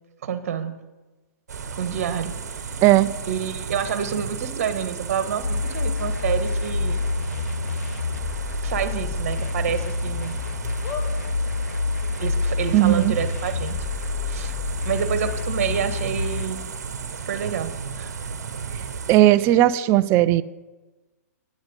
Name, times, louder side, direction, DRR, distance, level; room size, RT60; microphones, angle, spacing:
voice 1, 0.2-0.7 1.7-2.7 3.3-7.0 8.6-10.4 12.2-13.8 14.3-14.5 14.8-16.6 17.3-18.1, right 8 dB, 60° right, 10 dB, 1.3 m, -28 dB
sound 1, 1.5-19.2, right 5 dB, 75° right, 1.1 m, -34 dB
sound 2, 4.7-4.8 5.3-5.4 6.4-6.5 6.8-6.9 7.3-7.4 9.1-9.8 10.2-10.3 10.8-11.1 11.9-12.0 12.2-12.3, left 6 dB, 35° left, 1.6 m, -36 dB
sound 3, 5.4-16.5, left 4 dB, 70° left, 1.8 m, -27 dB
voice 2, 12.7-13.1 19.1-20.4, right 15 dB, 30° right, 16 dB, 0.4 m, -16 dB
10.0 x 9.5 x 5.2 m, 1.2 s
hypercardioid pair, 125°, 9 cm